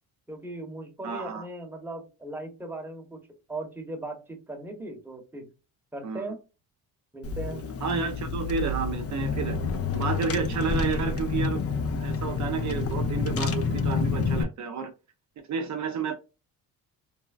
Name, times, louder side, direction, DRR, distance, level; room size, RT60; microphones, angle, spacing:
voice 1, 0.3-3.2 3.5-5.5 5.9-6.4 7.1-7.6, right 2 dB, 5° right, 2 dB, 1.0 m, -38 dB
voice 2, 1.0-1.5 6.0-6.2 7.8-9.6 9.9-11.6 12.0-14.9 15.4-16.1, right 5 dB, 50° right, 5 dB, 0.5 m, -31 dB
Car / Engine, 7.2-14.4, left 4 dB, 40° left, 0.5 m, -28 dB
3.3 x 2.1 x 2.3 m, 0.29 s
cardioid pair, 90°, 37 cm